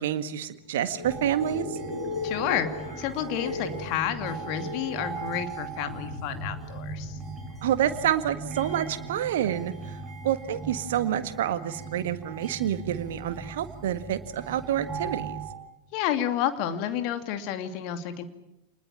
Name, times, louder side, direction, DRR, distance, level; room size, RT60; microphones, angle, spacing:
voice 1, 0.0-1.8 7.6-15.4, right 10 dB, 55° right, 11 dB, 1.7 m, -28 dB
sound 1, 0.6-9.4, left 2 dB, 80° left, 7.6 m, -38 dB
sound 2, 1.0-15.5, right 4 dB, ahead, 6.4 m, -39 dB
voice 2, 2.2-2.7 3.0-7.2 15.9-18.2, left 10 dB, 45° left, 8 dB, 2.6 m, -30 dB
28.0 x 20.5 x 8.7 m, 0.89 s
figure-of-eight pair, 90°, 0 cm